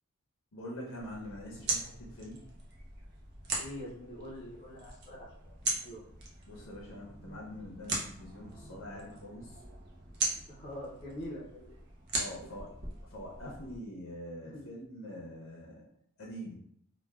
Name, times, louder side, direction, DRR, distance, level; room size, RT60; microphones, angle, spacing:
voice 1, 0.5-2.4 6.5-9.5 12.1-12.7 13.1-15.8 16.2-16.6, equal, 70° left, -3 dB, 0.6 m, -44 dB
sound 1, 1.0-13.8, right 2 dB, 50° right, 0.6 m, -40 dB
voice 2, 3.6-5.3 5.6-6.0 10.5-11.9 12.6-12.7 13.4-13.6 14.4-14.6, left 1 dB, 25° left, -7 dB, 0.6 m, -44 dB
3.2 x 2.2 x 2.3 m, 0.69 s
head